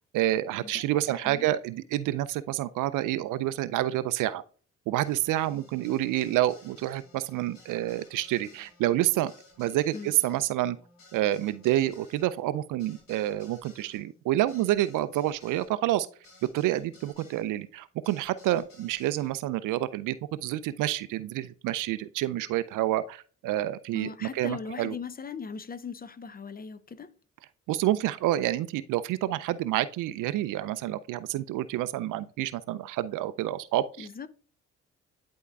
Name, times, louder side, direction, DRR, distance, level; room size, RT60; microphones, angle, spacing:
voice 1, 0.1-4.4 4.9-9.3 9.6-10.8 11.1-16.1 16.4-24.9 27.7-34.3, right 14 dB, 55° right, 0.5 m, -28 dB
voice 2, 1.1-1.5 9.9-10.1 23.9-27.2 34.0-34.3, left 5 dB, 25° left, 0.6 m, -39 dB
sound 1, 5.0-17.5 18.0-19.3, left 3 dB, 60° left, 2.4 m, -57 dB
11.0 x 4.3 x 2.4 m
figure-of-eight pair, 40°, 37 cm